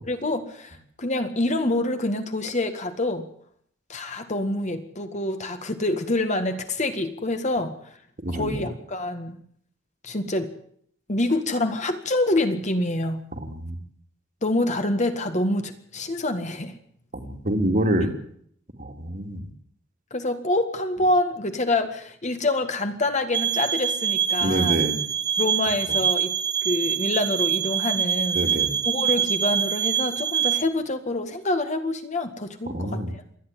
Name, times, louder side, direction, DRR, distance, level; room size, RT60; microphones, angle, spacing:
voice 1, 0.0-3.3 3.9-7.7 8.3-9.4 10.0-10.5 11.1-13.2 14.4-16.8 20.1-24.8 25.4-26.3 26.6-28.4 28.9-33.2, left 2 dB, 40° left, 7 dB, 1.9 m, -26 dB
voice 2, 8.2-8.6 13.3-13.8 17.1-18.1 18.8-19.5 24.4-25.0 25.9-26.0 28.3-28.7 32.7-33.1, right 1 dB, 45° right, 4 dB, 2.8 m, -26 dB
sound 1, 23.3-30.6, right 8 dB, 20° right, 0.7 m, -25 dB
27.0 x 11.0 x 9.3 m, 0.65 s
head